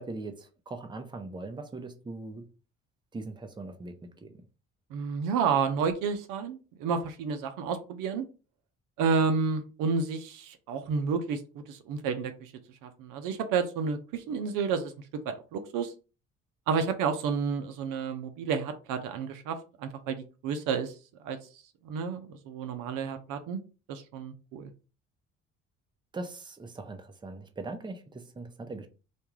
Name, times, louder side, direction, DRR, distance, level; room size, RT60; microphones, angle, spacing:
voice 1, 0.0-2.5 3.1-4.3 26.1-28.9, right 2 dB, 15° right, 0.6 m, -40 dB
voice 2, 4.9-8.2 9.0-11.4 11.7-12.5 12.8-14.9 15.3-15.9 16.7-20.9 21.2-21.4 21.8-23.6 23.9-24.7, right 5 dB, 75° right, 0.6 m, -30 dB
2.5 x 2.3 x 3.1 m
supercardioid pair, 65°, 32 cm